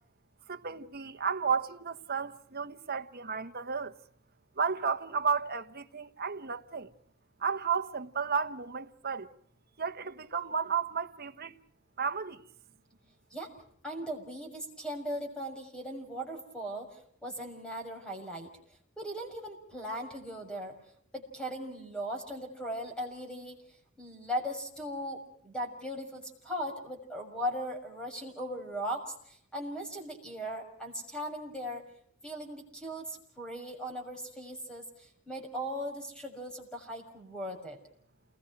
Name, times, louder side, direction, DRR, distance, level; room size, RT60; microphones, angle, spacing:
voice 1, 0.5-3.9 4.6-6.9 7.4-9.3 9.8-11.5 12.0-12.4, right 6 dB, 45° right, 1.2 m, -33 dB
voice 2, 13.8-18.5 19.0-20.8 21.1-23.6 24.0-31.8 32.2-37.8, equal, 5° left, 6.6 m, -38 dB
29.0 x 21.0 x 6.1 m
head